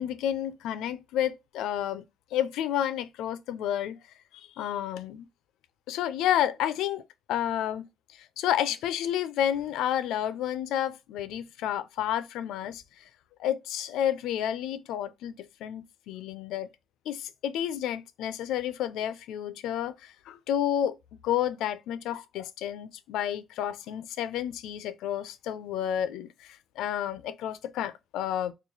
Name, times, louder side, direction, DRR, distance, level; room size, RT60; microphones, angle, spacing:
voice 1, 0.0-2.0 2.3-4.0 4.3-5.3 5.9-7.0 7.3-7.9 8.4-12.8 13.4-16.7 17.1-21.0 21.2-28.5, left 10 dB, 90° left, 0.3 m, -30 dB
3.0 x 2.2 x 3.8 m
cardioid pair, 90°, 0 cm